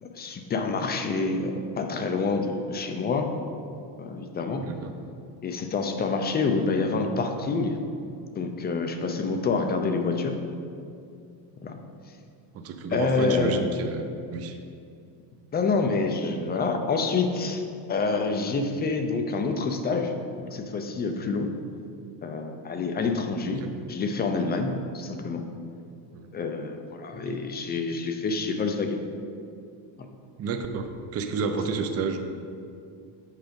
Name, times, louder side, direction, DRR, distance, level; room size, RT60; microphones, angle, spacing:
voice 1, 0.0-3.3 4.0-4.6 5.4-7.8 8.4-10.3 11.6-11.8 12.9-13.6 15.5-17.6 17.9-21.5 22.2-23.6 23.9-25.4 26.3-29.0, left 4 dB, 20° left, 5 dB, 0.5 m, -27 dB
voice 2, 4.6-4.9 12.6-14.0 14.3-14.6 23.4-23.7 26.1-26.3 30.4-32.2, right 5 dB, 30° right, 6 dB, 0.5 m, -30 dB
8.2 x 4.9 x 5.2 m, 2.5 s
cardioid pair, 145°, 48 cm